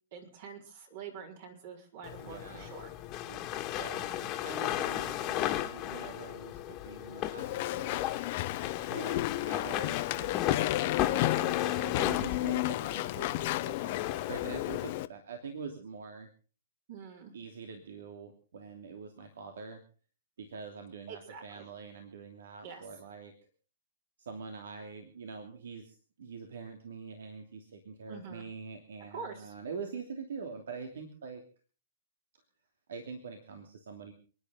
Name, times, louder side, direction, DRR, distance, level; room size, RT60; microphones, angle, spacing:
voice 1, 0.1-2.9 3.9-4.3 11.1-11.5 16.9-17.3 21.1-21.6 22.6-22.8 28.1-28.4 29.1-29.5, right 6 dB, 55° right, 0 dB, 4.6 m, -46 dB
sound 1, 2.0-14.8, left 13 dB, 30° left, 1.8 m, -36 dB
voice 2, 2.2-2.7 3.3-7.9 8.9-16.3 17.3-19.8 20.4-23.3 24.2-31.4 32.9-34.1, right 5 dB, 80° right, 5 dB, 2.9 m, -45 dB
Walk footsteps / Chatter / Squeak, 7.4-15.1, left 17 dB, 45° left, 0.9 m, -32 dB
29.5 x 10.5 x 3.8 m, 0.39 s
hypercardioid pair, 155°, 0 cm